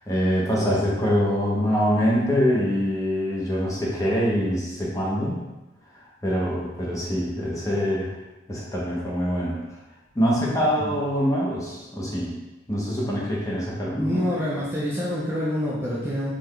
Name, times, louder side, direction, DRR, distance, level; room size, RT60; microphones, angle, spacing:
voice 1, 0.1-5.4 6.2-8.1 8.5-9.6 10.1-12.3 12.7-14.3, equal, 20° left, -5 dB, 0.8 m, -24 dB
voice 2, 14.0-16.3, equal, 10° right, -7 dB, 0.6 m, -27 dB
3.8 x 3.3 x 3.2 m, 1.1 s
head